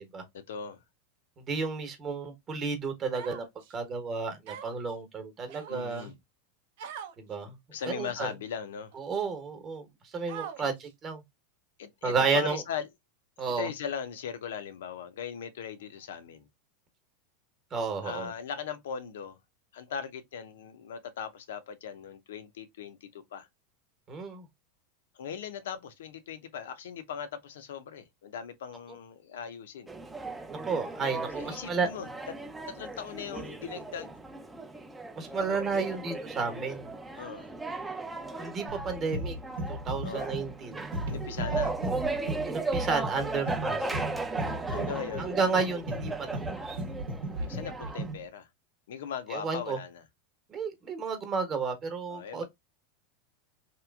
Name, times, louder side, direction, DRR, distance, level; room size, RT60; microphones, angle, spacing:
voice 1, 0.3-0.8 5.7-6.2 7.7-8.9 10.6-10.7 11.8-12.9 13.6-16.5 18.0-19.4 19.7-23.5 25.2-29.9 31.3-32.1 32.7-34.1 37.2-37.5 40.0-40.3 41.1-41.7 44.7-45.3 47.3-48.5 48.9-50.0 52.1-52.4, left 7 dB, 90° left, 0.5 m, -39 dB
voice 2, 1.5-3.4 3.7-6.1 7.2-7.5 7.9-8.3 9.0-9.9 10.1-11.2 12.0-12.6 13.4-13.7 17.7-18.3 24.1-24.4 30.5-31.9 35.2-36.9 38.4-39.4 39.7-40.9 42.5-43.8 45.2-46.1 46.5-46.8 49.3-49.8 50.5-52.4, right 5 dB, 30° right, 0.9 m, -32 dB
Human voice, 3.1-3.7 4.5-4.9 5.5-6.1 6.8-7.1 7.8-8.2 8.9-9.0 10.3-10.9, right 9 dB, 65° right, 0.5 m, -42 dB
sound 1, 29.9-48.1, right 3 dB, 10° right, 0.3 m, -37 dB
sound 2, 38.7-48.2, right 1 dB, 80° right, 0.9 m, -36 dB
3.0 x 2.4 x 2.2 m
supercardioid pair, 140°, 0 cm